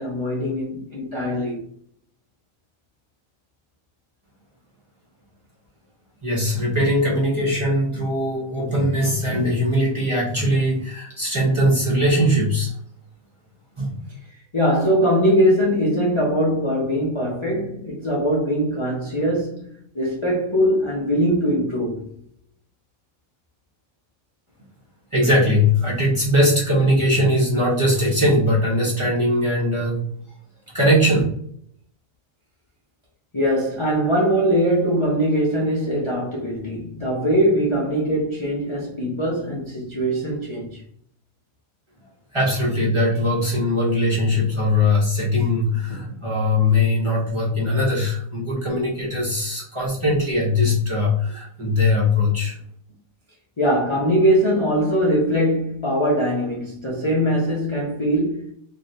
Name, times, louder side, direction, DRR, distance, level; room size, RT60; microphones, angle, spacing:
voice 1, 0.0-1.6 14.5-22.1 33.3-40.8 53.6-58.5, equal, 30° left, 0.5 m, -21 dB
voice 2, 6.2-12.7 13.8-14.0 25.1-30.0 30.7-31.2 42.3-52.6, left 1 dB, 25° right, 0.8 m, -20 dB
3.2 x 2.7 x 2.7 m
omnidirectional pair, 1.5 m